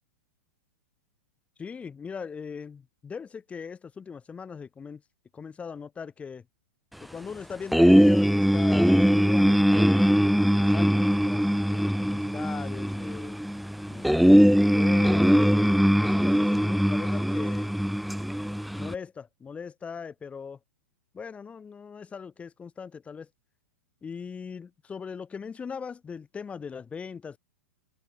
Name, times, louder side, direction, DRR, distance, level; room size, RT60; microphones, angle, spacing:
voice 1, 1.6-5.0 5.3-6.4 7.0-11.4 11.7-13.4 13.9-17.8 18.8-20.6 21.1-23.3 24.0-27.4, left 6 dB, 15° left, 3.5 m, -39 dB
sound 1, 7.7-18.9, equal, ahead, 0.9 m, -21 dB
figure-of-eight pair, 105°, 8 cm